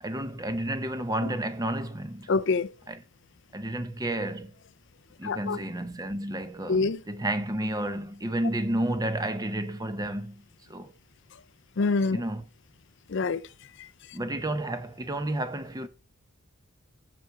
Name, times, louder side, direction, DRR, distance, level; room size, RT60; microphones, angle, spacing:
voice 1, 0.0-2.3 2.9-3.0 3.5-4.5 5.2-10.4 10.7-10.9 12.1-12.4 14.1-15.9, right 1 dB, 15° right, 0.7 m, -31 dB
voice 2, 2.3-2.7 5.2-5.6 6.7-7.0 11.8-12.2 13.1-13.5 13.8-13.9, left 4 dB, 55° left, 0.5 m, -26 dB
7.5 x 6.8 x 4.6 m
head